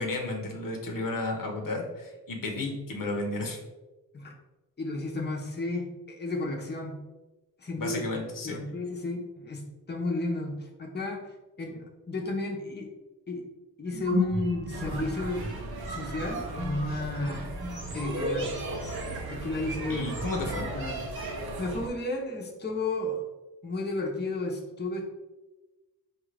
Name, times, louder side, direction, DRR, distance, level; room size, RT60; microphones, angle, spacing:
voice 1, 0.0-3.6 7.8-8.6 19.9-20.6, left 2 dB, 65° left, 2 dB, 0.8 m, -33 dB
voice 2, 4.8-7.0 7.6-8.1 8.4-12.9 13.3-13.4 13.8-15.4 15.9-17.5 17.9-18.6 19.3-21.0 21.6-23.3 23.6-25.0, left 2 dB, 30° left, -1 dB, 0.7 m, -33 dB
sound 1, 13.9-20.6, equal, 35° right, 0.6 m, -36 dB
sound 2, 14.7-21.9, right 2 dB, 85° right, 0.7 m, -37 dB
4.8 x 2.4 x 3.3 m, 1.1 s
wide cardioid pair, 75°, 36 cm